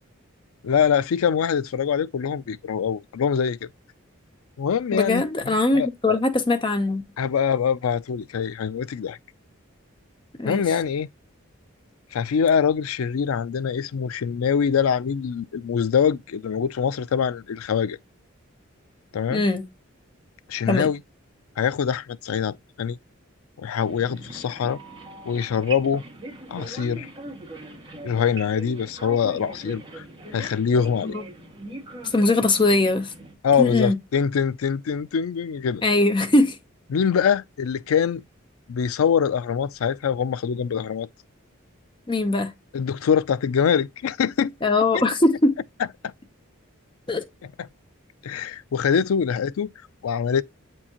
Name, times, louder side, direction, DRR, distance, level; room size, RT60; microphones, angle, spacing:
voice 1, 0.6-3.7 4.6-6.2 7.2-9.2 10.4-11.1 12.1-18.0 19.1-19.4 20.5-21.0 21.6-23.0 23.6-24.8 25.3-26.0 26.5-27.1 28.0-30.0 30.3-31.2 33.4-35.8 36.9-38.2 38.7-41.1 42.7-44.5 44.9-45.0 48.2-49.7 50.0-50.4, left 7 dB, 85° left, 0.4 m, -24 dB
voice 2, 4.9-7.0 10.4-10.8 19.3-19.6 20.7-20.9 31.0-31.2 32.0-33.1 33.6-34.0 35.8-36.6 42.1-42.5 44.6-45.6 47.1-47.2, left 2 dB, 25° left, 0.7 m, -21 dB
sound 1, 23.8-33.3, right 2 dB, 20° right, 1.7 m, -40 dB
7.6 x 4.5 x 2.9 m
head